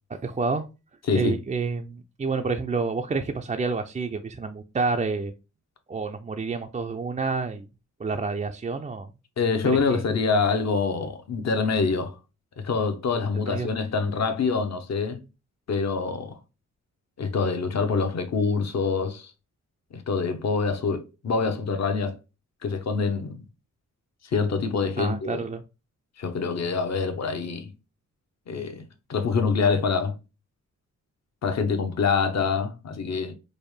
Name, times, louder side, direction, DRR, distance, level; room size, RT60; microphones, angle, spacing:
voice 1, 0.2-0.7 1.1-5.3 5.9-7.7 8.0-9.1 9.7-10.0 13.4-13.7 25.0-25.6, right 4 dB, 25° right, 0.4 m, -29 dB
voice 2, 1.1-1.4 9.4-12.2 12.6-15.2 15.7-16.4 17.2-19.3 19.9-22.1 22.6-23.4 24.3-25.4 26.2-27.7 28.5-30.2 31.4-33.3, left 4 dB, 55° left, 0.8 m, -25 dB
5.1 x 2.1 x 3.1 m
cardioid pair, 95°, 32 cm